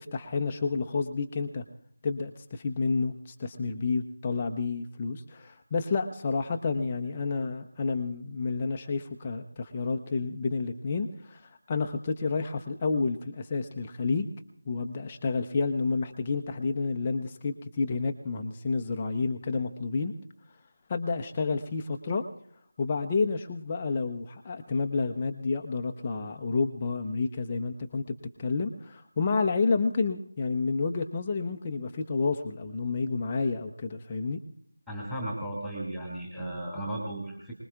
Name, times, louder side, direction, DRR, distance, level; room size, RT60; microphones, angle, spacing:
voice 1, 0.0-1.6 2.0-14.3 14.7-20.1 20.9-22.2 22.8-34.4, left 4 dB, 15° left, 4 dB, 0.7 m, -30 dB
voice 2, 34.9-37.5, right 1 dB, ahead, -2 dB, 2.3 m, -35 dB
25.0 x 20.0 x 2.4 m, 0.65 s
figure-of-eight pair, 165°, 0 cm